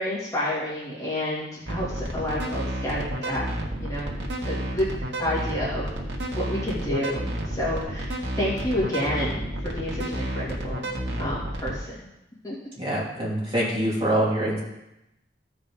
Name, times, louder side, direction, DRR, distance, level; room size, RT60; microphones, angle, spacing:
voice 1, 0.0-3.5 3.8-4.2 4.4-4.9 5.2-5.9 6.3-10.9 11.2-12.1 12.4-12.6, left 1 dB, 20° left, -7 dB, 2.0 m, -29 dB
sound 1, 1.7-11.7, right 1 dB, 80° right, 1.5 m, -31 dB
voice 2, 12.8-14.6, right 1 dB, 30° right, -6 dB, 3.0 m, -25 dB
14.5 x 5.2 x 3.5 m, 0.89 s
head